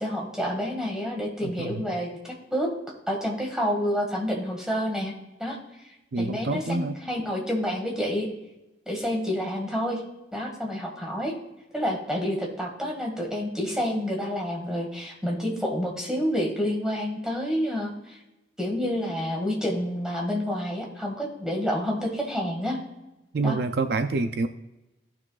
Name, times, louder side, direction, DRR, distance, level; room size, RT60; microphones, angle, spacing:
voice 1, 0.0-2.7 3.1-5.1 5.4-5.6 5.8-8.3 8.9-10.0 10.3-11.3 11.7-18.2 18.6-22.8 23.4-23.6, equal, 5° right, -1 dB, 1.9 m, -29 dB
voice 2, 1.4-1.8 6.1-7.0 23.3-24.5, right 3 dB, 60° right, 8 dB, 0.4 m, -27 dB
16.5 x 6.1 x 2.4 m, 0.96 s
head